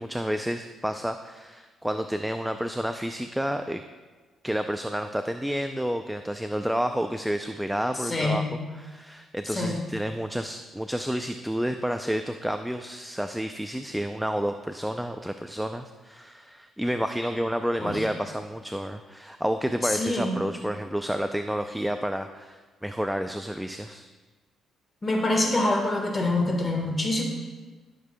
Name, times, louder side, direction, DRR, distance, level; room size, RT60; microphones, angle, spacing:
voice 1, 0.0-3.8 4.4-24.1, equal, 5° right, 7 dB, 0.4 m, -30 dB
voice 2, 8.1-8.5 9.5-9.8 17.8-18.0 19.9-20.4 25.0-27.2, left 2 dB, 30° left, 2 dB, 1.4 m, -25 dB
13.5 x 6.9 x 2.2 m, 1.3 s
cardioid pair, 90°, 0 cm